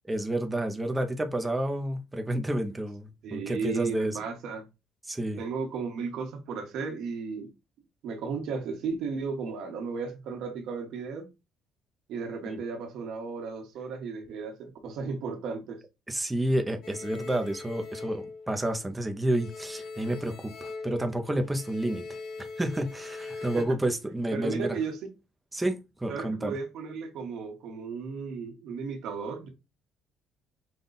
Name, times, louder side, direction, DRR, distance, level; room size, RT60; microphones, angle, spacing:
voice 1, 0.0-4.2 5.1-5.4 12.4-12.6 16.1-22.0 22.6-24.8 25.5-26.5, right 1 dB, 10° right, 0.6 m, -30 dB
voice 2, 3.2-4.6 5.4-7.5 8.0-11.3 12.1-15.8 23.3-23.6 24.3-25.0 26.1-29.5, right 5 dB, 65° right, 1.3 m, -34 dB
sound 1, 16.8-19.0 19.3-23.7, left 3 dB, 55° left, 0.9 m, -41 dB
5.4 x 2.3 x 3.9 m
cardioid pair, 175°, 0 cm